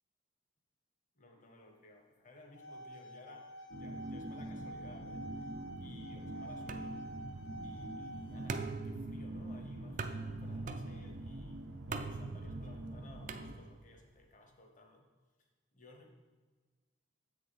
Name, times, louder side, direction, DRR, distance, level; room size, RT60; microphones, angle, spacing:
voice 1, 1.1-5.5 5.8-7.0 7.6-11.6 11.8-15.0 15.4-16.1, left 1 dB, 40° left, 3 dB, 1.0 m, -58 dB
sound 1, 2.4-8.6, right 1 dB, 60° left, 0.6 m, -49 dB
sound 2, 3.7-13.5, right 1 dB, 80° right, 0.6 m, -45 dB
sound 3, 6.7-14.1, right 4 dB, 40° right, 0.4 m, -45 dB
7.6 x 6.3 x 4.1 m, 1.3 s
head